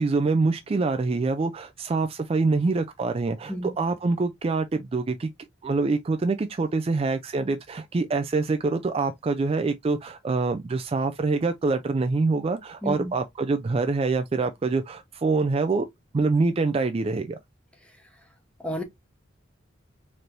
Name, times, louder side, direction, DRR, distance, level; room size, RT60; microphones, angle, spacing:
voice 1, 0.0-5.3 5.6-15.9 16.1-17.4, right 3 dB, 30° right, 0.3 m, -25 dB
voice 2, 12.8-13.1 18.6-18.8, equal, 5° left, 0.9 m, -31 dB
4.4 x 3.2 x 2.5 m
head